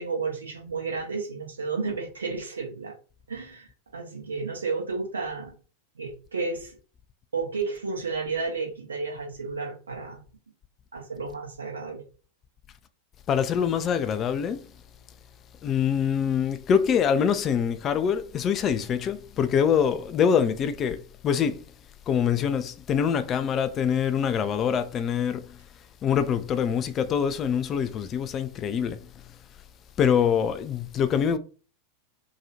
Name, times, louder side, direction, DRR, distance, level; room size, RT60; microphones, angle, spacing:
voice 1, 0.0-2.9 3.3-5.5 6.0-6.7 7.3-10.2 10.9-12.0, right 4 dB, 75° right, 0.9 m, -32 dB
voice 2, 13.3-14.7 15.6-21.6 22.1-25.5 26.0-29.0 30.0-31.4, left 7 dB, 30° left, 0.3 m, -24 dB
2.8 x 2.3 x 2.7 m
figure-of-eight pair, 90°, 0 cm